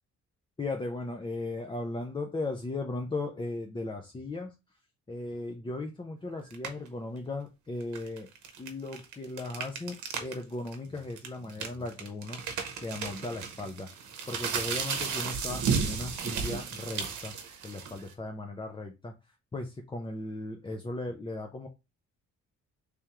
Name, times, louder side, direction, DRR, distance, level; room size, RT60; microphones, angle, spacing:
voice 1, 0.6-4.5 5.1-8.3 8.6-12.4 12.8-17.3 17.6-19.1 19.5-21.7, left 2 dB, 15° left, 4 dB, 0.5 m, -37 dB
sound 1, 6.5-6.9 7.8-10.3 10.7-10.8 11.2-18.1, right 6 dB, 70° right, 0.9 m, -34 dB
3.4 x 3.4 x 2.9 m, 0.25 s
cardioid pair, 90°, 30 cm